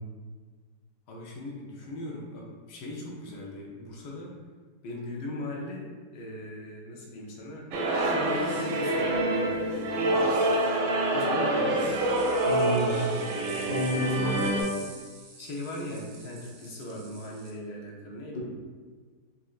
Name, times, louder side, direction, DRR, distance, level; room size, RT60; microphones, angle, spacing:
voice 1, 1.1-4.3 4.8-5.9 6.1-7.7 7.9-10.4 11.1-12.2 13.9-14.8 15.4-18.4, left 1 dB, 75° left, -2 dB, 1.2 m, -38 dB
sound 1, 7.7-14.6, right 1 dB, 70° right, 0.9 m, -26 dB
sound 2, 12.0-17.5, right 4 dB, 90° right, 1.3 m, -49 dB
voice 2, 12.5-13.0 13.6-14.3 18.3-18.4, equal, 60° left, -3 dB, 0.8 m, -29 dB
4.2 x 2.4 x 2.4 m, 1.5 s
omnidirectional pair, 1.8 m